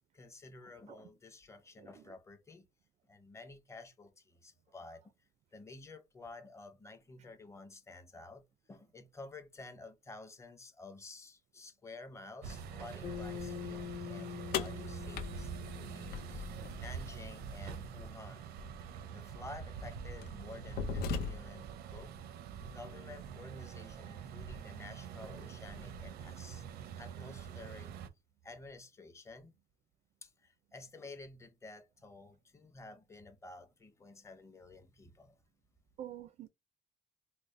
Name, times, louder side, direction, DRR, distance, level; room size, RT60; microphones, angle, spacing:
voice 1, 0.1-2.7 3.1-5.0 5.5-16.5 16.8-18.5 19.1-22.1 22.6-26.7 27.0-27.9 28.4-29.5 30.2-35.4, left 3 dB, 20° left, 0.7 m, -52 dB
voice 2, 1.8-2.1 14.3-14.4 16.2-16.3 36.0-36.5, right 11 dB, 45° right, 0.4 m, -49 dB
sound 1, 12.4-28.1, right 6 dB, 85° right, 0.6 m, -45 dB
Bass guitar, 13.0-17.4, left 8 dB, 50° left, 1.0 m, -45 dB
sound 2, 14.5-16.7 18.6-18.7 19.5-19.7 20.2-21.7, left 6 dB, 90° left, 0.6 m, -38 dB
4.0 x 2.0 x 3.1 m
cardioid pair, 145°, 16 cm